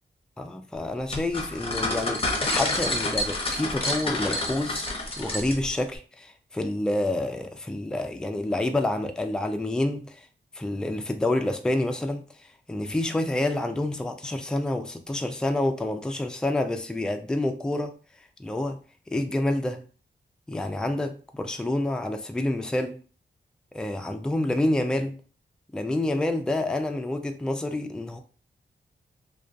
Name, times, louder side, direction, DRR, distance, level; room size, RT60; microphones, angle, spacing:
voice 1, 0.4-4.9 5.2-10.3 10.5-12.3 12.7-17.9 18.4-18.8 19.1-19.8 20.5-23.0 23.7-25.2 25.7-28.2, left 1 dB, 5° left, 0.3 m, -28 dB
sound 1, 1.1-5.8, left 2 dB, 30° left, 0.7 m, -28 dB
2.4 x 2.2 x 2.4 m
cardioid pair, 70°, 19 cm